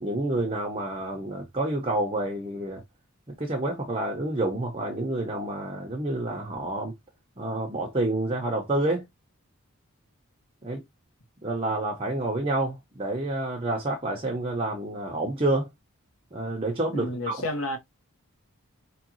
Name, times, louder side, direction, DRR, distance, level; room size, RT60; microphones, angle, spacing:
voice 1, 0.0-2.8 3.4-6.9 7.4-9.1 10.6-10.8 11.4-15.7 16.3-17.4, right 2 dB, 25° right, 1.1 m, -28 dB
voice 2, 16.9-17.8, left 1 dB, 80° left, 1.5 m, -30 dB
5.2 x 3.3 x 3.1 m
head